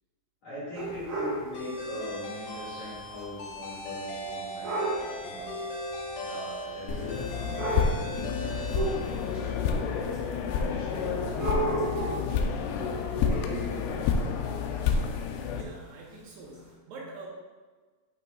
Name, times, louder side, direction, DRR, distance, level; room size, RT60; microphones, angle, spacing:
voice 1, 0.4-5.5 6.1-7.8 8.1-14.9, left 1 dB, 50° left, -11 dB, 2.3 m, -43 dB
sound 1, 0.7-1.5 2.7-2.8 3.2-3.3 4.6-5.1 6.1-6.2 7.2-7.3 7.5-8.1 8.7-9.4 10.1-10.2 11.3-12.3 14.8-14.9 15.6-15.7 16.5-16.6, right 2 dB, 45° right, 2.1 m, -31 dB
sound 2, 1.5-9.7, equal, 70° left, 1.7 m, -38 dB
sound 3, 6.9-15.6, left 6 dB, 90° left, 2.2 m, -29 dB
voice 2, 15.4-17.3, right 3 dB, 75° right, -3 dB, 2.8 m, -45 dB
8.7 x 5.4 x 2.4 m, 1.4 s
omnidirectional pair, 5.0 m